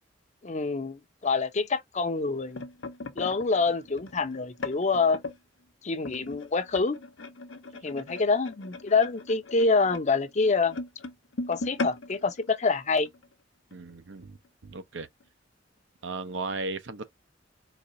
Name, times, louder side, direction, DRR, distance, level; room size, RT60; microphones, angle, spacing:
voice 1, 0.4-2.6 3.2-5.2 5.8-7.0 7.8-10.8 11.5-13.1, left 4 dB, 40° left, 0.6 m, -26 dB
sound 1, 2.1-5.4 6.0-13.3 13.7-13.9 14.2-14.5 15.2-15.3, left 3 dB, 85° left, 0.8 m, -39 dB
voice 2, 13.7-15.1 16.0-17.0, right 3 dB, 70° right, 0.8 m, -36 dB
4.2 x 3.2 x 2.6 m
head